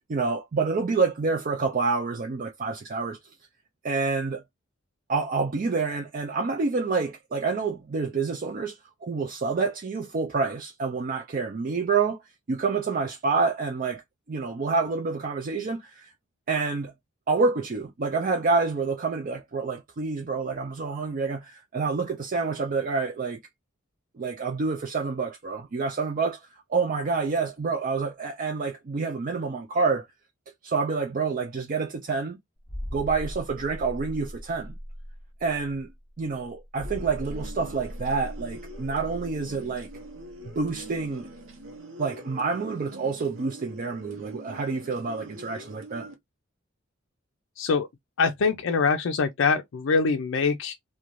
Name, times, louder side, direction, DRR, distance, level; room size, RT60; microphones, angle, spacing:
voice 1, 0.1-3.2 3.8-4.4 5.1-12.2 12.5-14.0 14.3-16.1 16.5-16.9 17.3-23.4 24.2-26.4 26.7-30.1 30.6-32.4 32.9-34.8 35.4-35.9 36.2-39.9 40.6-41.3 42.0-46.1, right 4 dB, 40° right, 0.4 m, -28 dB
sound 1, 32.6-41.1 41.3-41.5, equal, 5° left, 0.7 m, -39 dB
sound 2, 36.8-46.1, right 1 dB, 70° right, 0.8 m, -44 dB
voice 2, 47.6-47.9 48.2-50.7, left 4 dB, 65° left, 0.4 m, -24 dB
2.5 x 2.2 x 3.0 m
head